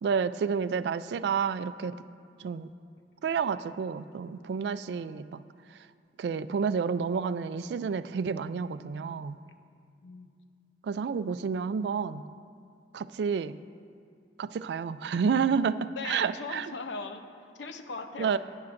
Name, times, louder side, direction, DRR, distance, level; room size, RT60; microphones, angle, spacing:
voice 1, 0.0-1.9 2.4-2.7 3.2-5.4 6.2-9.4 10.8-12.2 12.9-13.6 14.4-16.7 18.2-18.4, right 6 dB, 70° right, 14 dB, 0.3 m, -30 dB
voice 2, 16.0-17.2 17.6-18.4, left 4 dB, 85° left, 7 dB, 0.7 m, -39 dB
16.5 x 9.6 x 2.5 m, 2.3 s
head